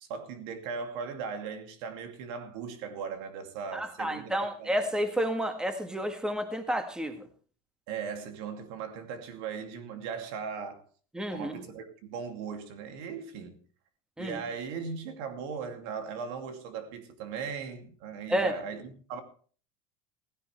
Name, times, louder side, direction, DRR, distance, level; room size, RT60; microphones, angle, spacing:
voice 1, 0.0-4.3 4.6-4.9 7.9-10.8 11.3-13.6 14.2-19.2, right 6 dB, 75° right, 2.6 m, -38 dB
voice 2, 3.7-7.3 11.1-11.6 14.2-14.4 18.3-18.5, equal, 5° right, 1.8 m, -30 dB
16.5 x 15.5 x 3.3 m
supercardioid pair, 125°, 14 cm